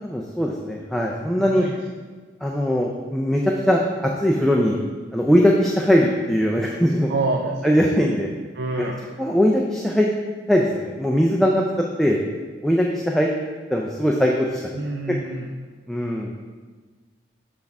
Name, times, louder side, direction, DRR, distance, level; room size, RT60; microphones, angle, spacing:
voice 1, 0.0-1.7 2.4-4.8 5.1-7.1 7.6-8.3 8.8-8.9 9.2-10.1 10.5-11.6 12.0-12.2 12.6-13.3 13.7-14.6 15.9-16.3, equal, ahead, -1 dB, 0.3 m, -20 dB
voice 2, 1.4-1.8 7.1-7.8 8.5-9.0 14.7-15.5, right 3 dB, 65° right, 1 dB, 0.5 m, -27 dB
7.0 x 3.5 x 5.3 m, 1.4 s
head